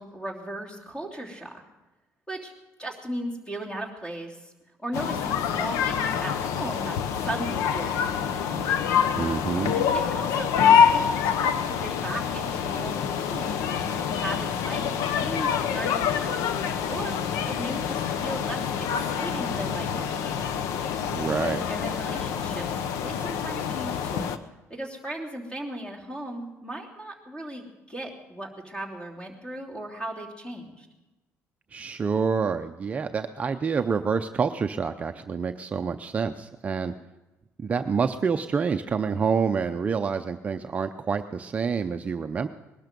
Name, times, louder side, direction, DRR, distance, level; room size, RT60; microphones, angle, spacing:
voice 1, 0.0-1.5 2.3-2.5 2.8-4.5 4.8-7.0 7.2-8.8 9.7-13.6 14.2-16.5 16.9-17.2 17.5-20.5 21.7-24.3 24.7-30.9, right 1 dB, 15° left, 1 dB, 3.1 m, -37 dB
sound 1, 4.9-24.4, left 7 dB, 85° left, 1.0 m, -26 dB
voice 2, 9.1-9.7 21.1-21.6 31.7-36.9 37.6-42.5, right 5 dB, 25° right, 7 dB, 0.6 m, -27 dB
20.5 x 12.5 x 5.3 m, 1.1 s
cardioid pair, 135°, 5 cm